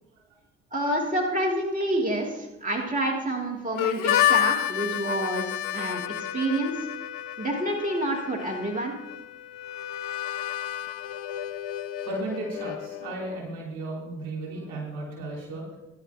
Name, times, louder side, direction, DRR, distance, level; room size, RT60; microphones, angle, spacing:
voice 1, 0.7-6.7 7.4-8.9, right 1 dB, 20° right, -1 dB, 2.9 m, -28 dB
Harmonica, 3.8-13.4, left 12 dB, 70° left, 0.6 m, -30 dB
voice 2, 12.0-15.6, right 2 dB, 65° right, -2 dB, 5.1 m, -34 dB
18.0 x 11.0 x 3.0 m, 0.90 s
figure-of-eight pair, 45°, 38 cm